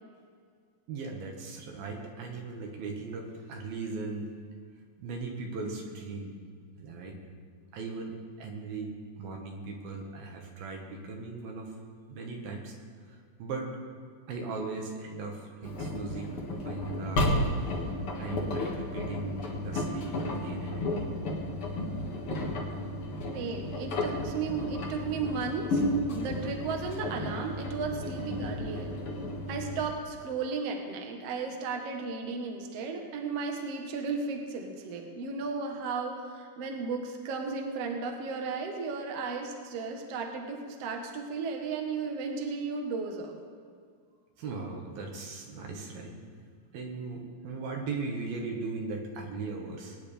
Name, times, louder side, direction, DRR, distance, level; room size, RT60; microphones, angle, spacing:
voice 1, 0.9-4.3 5.0-6.4 6.8-7.2 7.7-11.7 12.1-12.7 13.1-13.7 14.3-16.4 16.6-17.3 17.6-17.8 18.2-21.1 44.4-46.2 46.7-50.0, right 3 dB, 75° right, 1 dB, 3.4 m, -38 dB
Engine, 15.6-29.8, left 1 dB, 50° left, 2.0 m, -33 dB
voice 2, 23.3-25.8 26.1-28.9 29.5-43.4, right 4 dB, 55° right, 2 dB, 1.9 m, -34 dB
22.0 x 9.9 x 3.4 m, 2.1 s
omnidirectional pair, 4.2 m